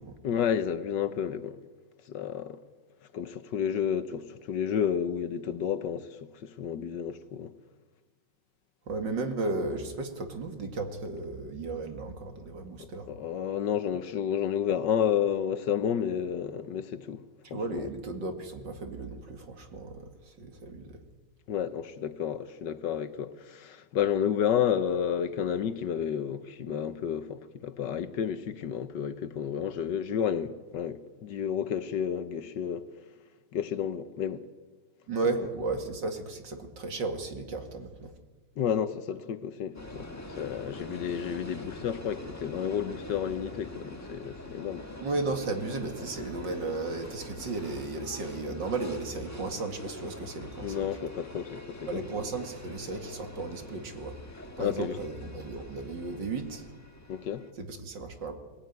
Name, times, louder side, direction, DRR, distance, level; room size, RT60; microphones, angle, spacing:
voice 1, 0.2-1.6 2.1-2.6 3.1-7.5 12.8-17.2 17.5-17.9 21.5-32.9 33.5-34.4 35.4-35.5 38.6-44.9 50.6-52.1 54.6-55.0 57.1-57.5, left 8 dB, 70° left, 1.5 m, -31 dB
voice 2, 8.9-13.1 17.5-21.0 35.1-38.1 45.0-50.9 51.9-54.2 54.6-56.7 57.6-58.3, right 3 dB, 65° right, 2.9 m, -34 dB
sound 1, 39.7-57.5, left 1 dB, 10° left, 1.5 m, -44 dB
21.5 x 17.0 x 9.4 m
omnidirectional pair, 2.1 m